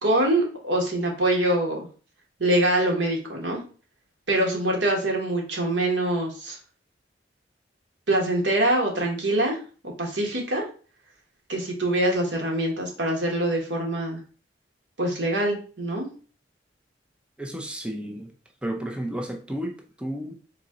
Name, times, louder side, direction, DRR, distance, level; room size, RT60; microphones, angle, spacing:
voice 1, 0.0-1.8 2.4-3.6 4.3-6.6 8.1-9.6 10.0-10.6 11.5-14.2 15.0-16.1, right 1 dB, 80° right, 1.3 m, -24 dB
voice 2, 17.4-18.3 18.6-20.4, right 1 dB, 5° right, 0.5 m, -32 dB
3.9 x 2.8 x 3.7 m
head